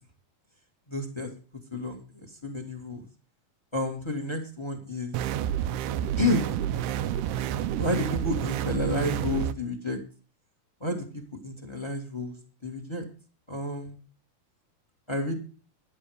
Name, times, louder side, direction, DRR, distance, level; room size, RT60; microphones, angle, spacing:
voice 1, 0.9-1.3 1.7-3.1 3.7-5.2 6.2-6.5 7.8-10.0 10.8-13.0 13.5-14.0 15.1-15.3, left 1 dB, 15° left, 4 dB, 1.1 m, -30 dB
sound 1, 5.1-9.5, right 10 dB, 90° right, 2.3 m, -29 dB
11.0 x 9.6 x 4.9 m, 0.39 s
omnidirectional pair, 3.6 m